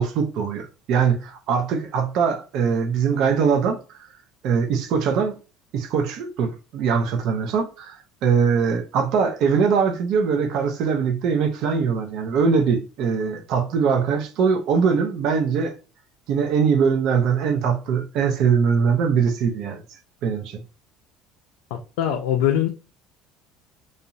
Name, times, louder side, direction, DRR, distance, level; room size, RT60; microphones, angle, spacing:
voice 1, 0.0-4.1 4.4-5.4 5.7-15.7 16.3-19.8 20.2-20.6, right 6 dB, 60° right, 0.4 m, -22 dB
voice 2, 21.7-22.7, left 10 dB, 90° left, 0.3 m, -22 dB
2.5 x 2.0 x 2.7 m
cardioid pair, 125°, 0 cm